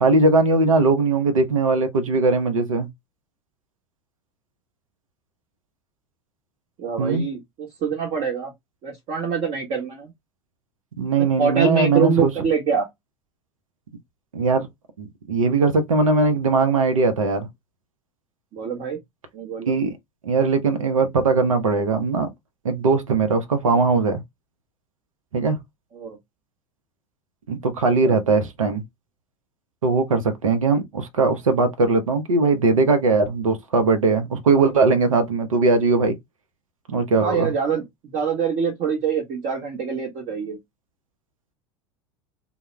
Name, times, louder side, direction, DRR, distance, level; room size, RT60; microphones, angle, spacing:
voice 1, 0.0-2.9 7.0-7.2 11.0-12.3 14.3-14.7 15.0-17.5 19.7-19.9 20.2-22.3 22.6-24.2 25.3-25.6 27.5-28.8 29.8-36.2 36.9-37.5, right 3 dB, 80° right, 0.6 m, -20 dB
voice 2, 6.8-8.5 8.8-10.1 11.4-12.9 18.5-19.0 19.3-19.7 25.9-26.2 28.0-28.2 37.2-37.8 38.1-40.6, right 6 dB, 40° right, 0.8 m, -25 dB
2.2 x 2.0 x 3.1 m
figure-of-eight pair, 80°, 17 cm